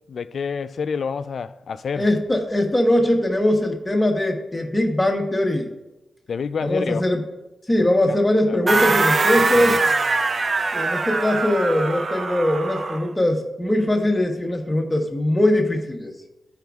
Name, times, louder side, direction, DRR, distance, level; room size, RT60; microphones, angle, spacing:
voice 1, 0.1-2.1 6.3-7.0 8.1-8.2 9.5-9.8, left 6 dB, 65° left, 0.3 m, -28 dB
voice 2, 1.9-5.8 6.6-7.2 7.7-9.8 10.7-16.1, left 1 dB, 10° left, 0.9 m, -21 dB
sound 1, 8.7-13.1, right 3 dB, 40° right, 0.4 m, -22 dB
15.0 x 5.0 x 2.3 m
wide cardioid pair, 165°, 0 cm